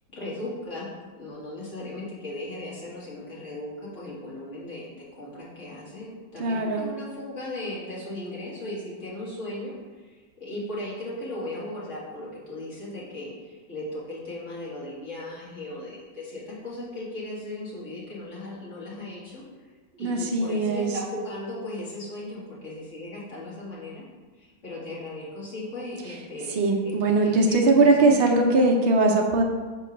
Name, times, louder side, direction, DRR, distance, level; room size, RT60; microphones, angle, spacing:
voice 1, 0.1-0.9 1.2-19.4 20.0-24.0 24.4-28.2, left 1 dB, 40° left, -7 dB, 2.2 m, -37 dB
voice 2, 6.4-6.9 20.0-20.9 26.6-29.4, right 2 dB, 55° right, 1 dB, 0.7 m, -20 dB
5.1 x 4.3 x 5.9 m, 1.3 s
omnidirectional pair, 2.1 m